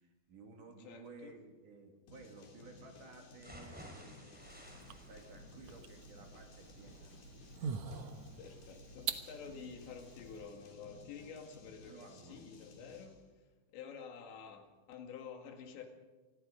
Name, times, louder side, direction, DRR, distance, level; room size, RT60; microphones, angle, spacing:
voice 1, 0.0-4.6 5.1-7.8 11.8-12.4, right 3 dB, 50° right, 3 dB, 3.5 m, -56 dB
voice 2, 0.8-1.3 8.4-13.2 13.7-15.9, left 6 dB, 80° left, 4 dB, 4.3 m, -50 dB
sound 1, 2.1-13.2, left 3 dB, 55° left, 4.7 m, -57 dB
sound 2, 3.4-11.3 11.7-11.8 12.2-12.3, equal, ahead, 4.0 m, -58 dB
sound 3, 4.4-10.5, right 7 dB, 70° right, 1.7 m, -45 dB
28.5 x 21.0 x 5.2 m, 1.2 s
omnidirectional pair, 5.1 m